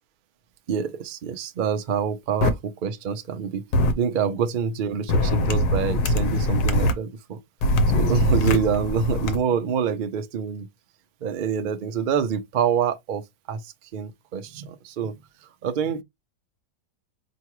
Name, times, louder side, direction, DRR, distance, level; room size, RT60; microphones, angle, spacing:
voice 1, 0.7-3.6 3.9-7.4 7.9-10.7 11.2-13.2 13.5-15.1 15.6-16.0, right 7 dB, 85° right, 0.4 m, -26 dB
sound 1, 2.4-2.5 3.7-3.9 5.1-6.9 7.6-9.4, left 1 dB, 80° left, 1.3 m, -22 dB
4.7 x 2.9 x 3.0 m
omnidirectional pair, 1.7 m